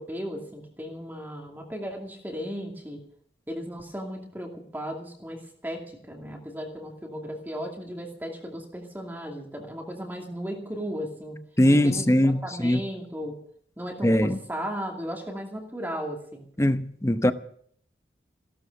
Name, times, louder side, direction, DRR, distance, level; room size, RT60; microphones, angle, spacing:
voice 1, 0.0-3.0 3.5-11.4 11.7-13.4 13.8-16.5, equal, 10° right, 2.4 m, -36 dB
voice 2, 11.6-12.8 14.0-14.4 16.6-17.3, left 1 dB, 15° left, 0.8 m, -21 dB
16.5 x 12.5 x 6.5 m
head